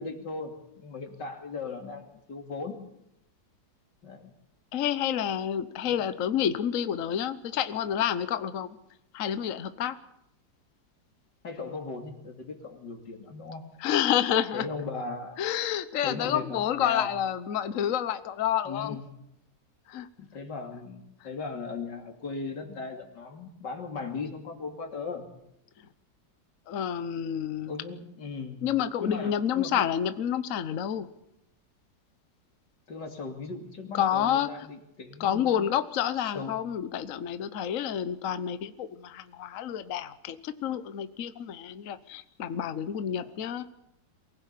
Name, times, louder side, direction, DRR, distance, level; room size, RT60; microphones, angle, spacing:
voice 1, 0.0-2.8 4.0-4.3 5.8-6.0 11.4-13.6 14.5-15.4 16.0-17.1 18.6-19.0 20.2-25.2 27.7-28.6 29.0-29.9 32.9-35.5 36.1-36.6 43.2-43.4, left 4 dB, 70° left, 3 dB, 3.4 m, -38 dB
voice 2, 4.7-8.7 9.1-9.9 13.8-14.6 15.4-19.0 19.9-20.1 26.7-27.7 28.6-31.1 33.9-34.7 35.2-43.6, left 9 dB, 50° left, 12 dB, 1.2 m, -29 dB
23.5 x 16.0 x 8.4 m, 0.80 s
omnidirectional pair, 2.0 m